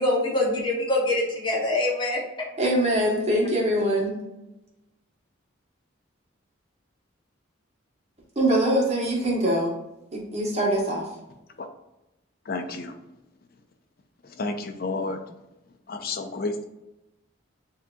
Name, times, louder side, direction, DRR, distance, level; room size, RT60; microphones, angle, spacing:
voice 1, 0.0-2.2, left 2 dB, 25° left, -2 dB, 0.9 m, -24 dB
voice 2, 2.6-4.2 8.4-9.7 10.1-11.1, right 1 dB, 30° right, -2 dB, 1.1 m, -23 dB
voice 3, 12.5-12.9 14.4-15.2 15.9-16.5, left 3 dB, 45° left, 6 dB, 0.5 m, -30 dB
7.4 x 2.8 x 2.3 m, 0.94 s
head